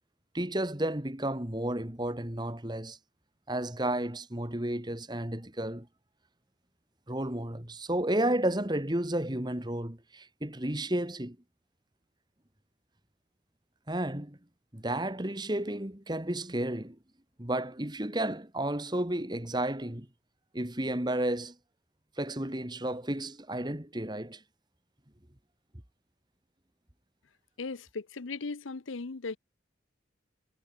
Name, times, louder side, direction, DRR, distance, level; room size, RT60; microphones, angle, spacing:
voice 1, 0.3-3.0 3.5-5.9 7.1-11.4 13.9-14.4 14.7-17.0 17.4-20.1 20.5-21.6 22.2-24.4, right 1 dB, 20° right, 1.8 m, -32 dB
voice 2, 27.6-29.4, left 4 dB, 85° left, 0.8 m, -37 dB
head